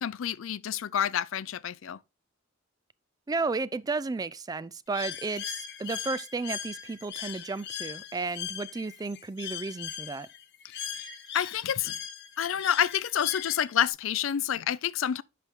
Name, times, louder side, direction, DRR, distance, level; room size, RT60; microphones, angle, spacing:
voice 1, 0.0-2.0 11.3-12.0 12.4-15.2, left 9 dB, 75° left, 0.4 m, -28 dB
voice 2, 3.3-10.3, right 3 dB, 20° right, 0.3 m, -33 dB
Bird, 4.9-13.9, left 9 dB, 60° left, 0.9 m, -39 dB
8.3 x 6.0 x 3.6 m
head